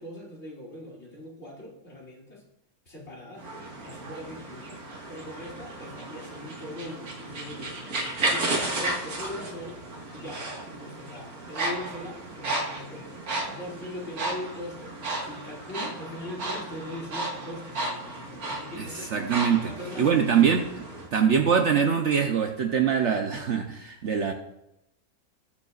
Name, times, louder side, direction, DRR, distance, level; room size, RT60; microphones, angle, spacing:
voice 1, 0.0-2.4 2.9-3.5 3.8-4.8 5.1-8.0 8.3-9.8 10.1-13.1 13.5-15.0 15.2-19.1 19.6-20.4, left 1 dB, 45° left, -4 dB, 2.8 m, -40 dB
sound 1, 3.4-21.1, right 2 dB, 75° right, 2.2 m, -34 dB
voice 2, 18.8-24.3, right 7 dB, 55° right, 4 dB, 1.0 m, -24 dB
20.0 x 6.6 x 2.4 m, 0.85 s
omnidirectional pair, 1.6 m